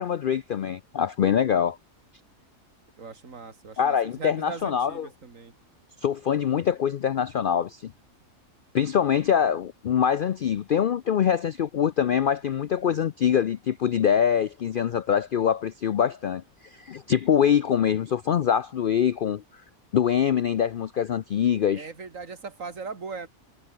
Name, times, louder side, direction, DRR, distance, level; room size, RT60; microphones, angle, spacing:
voice 1, 0.0-1.8 3.8-5.1 6.0-7.9 8.7-19.4 19.9-21.9, left 8 dB, 60° left, 0.5 m, -24 dB
voice 2, 3.0-5.5 21.8-23.3, right 4 dB, 65° right, 2.6 m, -39 dB
omnidirectional pair, 1.5 m